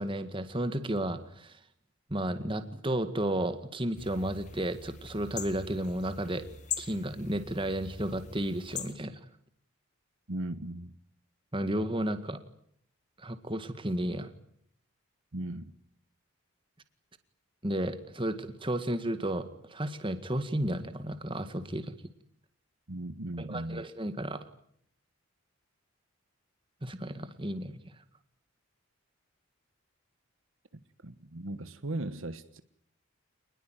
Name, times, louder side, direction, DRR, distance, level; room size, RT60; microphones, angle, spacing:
voice 1, 0.0-1.6 2.1-6.5 6.8-9.2 11.5-12.4 13.2-14.3 17.6-21.9 23.4-24.4 26.8-27.9, right 1 dB, 20° right, 1.9 m, -33 dB
sound 1, 4.0-8.9, left 7 dB, 35° left, 1.9 m, -42 dB
voice 2, 10.3-10.9 15.3-15.7 22.9-23.8 30.7-32.6, right 1 dB, 60° right, 1.3 m, -37 dB
27.5 x 20.5 x 9.3 m
head